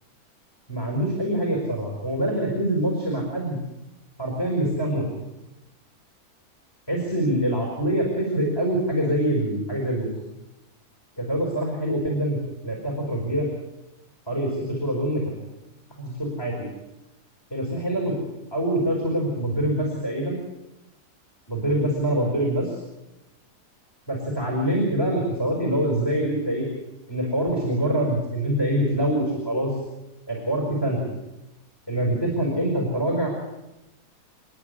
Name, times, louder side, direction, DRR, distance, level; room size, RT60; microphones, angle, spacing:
voice 1, 0.7-3.6 4.2-5.1 6.9-10.1 11.2-13.4 14.3-15.2 16.0-16.5 17.5-18.1 18.5-20.4 21.5-22.8 24.1-26.7 27.1-29.7 30.3-31.1 31.9-33.4, right 1 dB, 15° left, -1 dB, 5.0 m, -25 dB
28.5 x 10.0 x 9.6 m, 0.96 s
omnidirectional pair, 1.6 m